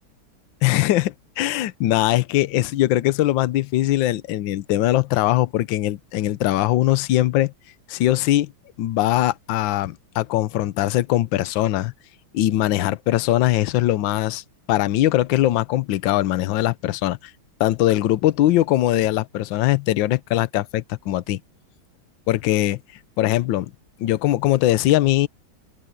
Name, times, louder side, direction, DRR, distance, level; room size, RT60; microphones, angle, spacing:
voice 1, 0.6-7.5 7.9-8.5 8.8-11.9 12.3-14.4 14.7-17.2 17.6-21.4 22.3-22.8 23.2-23.7 24.0-25.3, left 14 dB, 75° left, 1.4 m, -21 dB
open air
omnidirectional pair, 2.2 m